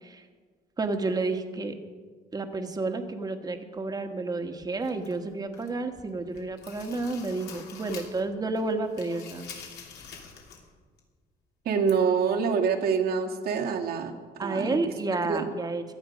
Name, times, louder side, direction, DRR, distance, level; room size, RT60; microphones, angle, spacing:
voice 1, 0.8-1.8 2.3-9.5 14.4-15.8, right 3 dB, 25° right, 6 dB, 1.4 m, -30 dB
sound 1, 4.8-5.8 6.2-8.3 8.6-10.7 11.0-11.1 11.9-12.0, left 6 dB, 75° left, 3.2 m, -46 dB
voice 2, 11.7-14.9 15.2-15.5, right 6 dB, 65° right, 2 dB, 1.9 m, -26 dB
17.0 x 12.0 x 5.2 m, 1.5 s
cardioid pair, 110°, 17 cm